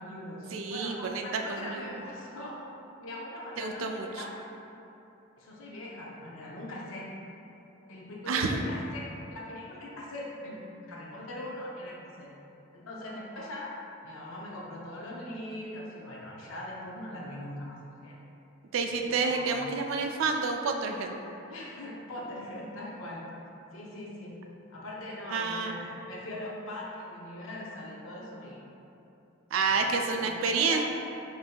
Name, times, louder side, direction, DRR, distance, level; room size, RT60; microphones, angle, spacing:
voice 1, 0.0-2.6 3.0-4.3 5.4-7.1 7.9-12.4 12.7-13.7 14.0-18.2 19.0-19.7 21.5-23.3 23.7-24.4 24.7-28.6 29.6-29.8 30.1-30.8, left 1 dB, 80° left, -3 dB, 0.5 m, -41 dB
voice 2, 0.5-1.8 3.6-4.2 8.3-8.6 18.7-21.1 25.3-25.7 29.5-30.8, right 4 dB, 75° right, 4 dB, 0.3 m, -29 dB
5.2 x 2.6 x 2.2 m, 2.9 s
head